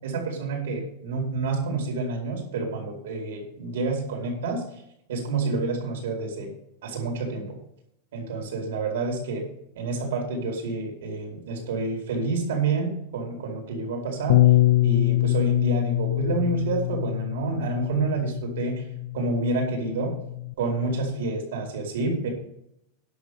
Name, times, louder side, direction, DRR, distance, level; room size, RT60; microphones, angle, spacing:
voice 1, 0.0-4.6 5.1-6.5 6.8-7.6 8.1-9.5 9.7-14.4 14.8-18.8 19.1-20.2 20.6-22.3, right 3 dB, 90° right, 0 dB, 4.7 m, -28 dB
Bass guitar, 14.3-20.5, left 16 dB, 60° left, 0.4 m, -24 dB
11.0 x 7.0 x 6.8 m, 0.74 s
supercardioid pair, 170°, 0 cm